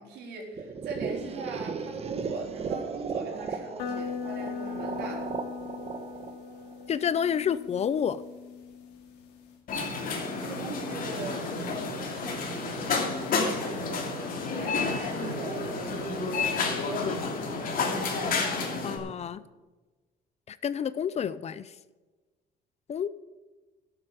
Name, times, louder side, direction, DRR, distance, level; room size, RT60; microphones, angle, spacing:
voice 1, 0.0-5.3 10.4-16.1 16.3-17.2, right 4 dB, 75° right, 0 dB, 4.1 m, -41 dB
sound 1, 0.6-7.4, right 5 dB, 35° right, 1.3 m, -36 dB
sound 2, 3.8-9.6, left 6 dB, 90° left, 2.4 m, -39 dB
voice 2, 6.9-8.2 17.0-17.2 18.8-19.4 20.5-21.7 22.9-23.1, left 8 dB, 40° left, 16 dB, 0.6 m, -29 dB
sound 3, 9.7-19.0, left 4 dB, 55° left, 2.9 m, -30 dB
12.0 x 8.8 x 6.7 m, 1.2 s
cardioid pair, 110°, 17 cm